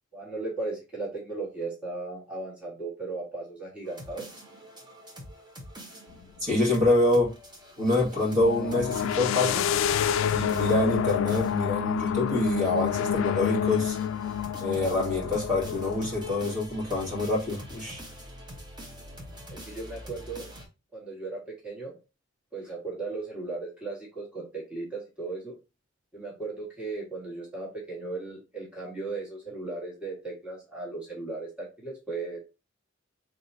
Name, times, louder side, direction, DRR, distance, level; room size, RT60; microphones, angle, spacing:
voice 1, 0.1-4.4 19.5-20.5 20.9-21.9 22.5-25.5 26.1-32.4, right 3 dB, 5° right, 1.5 m, -36 dB
sound 1, 3.8-20.7, equal, 20° right, 1.1 m, -46 dB
sound 2, 6.1-6.2 8.2-16.5, left 9 dB, 75° left, 0.3 m, -28 dB
voice 2, 6.4-7.3 7.8-9.7 10.3-14.0 14.6-18.0, left 2 dB, 40° right, 2.0 m, -26 dB
4.9 x 3.5 x 2.7 m
head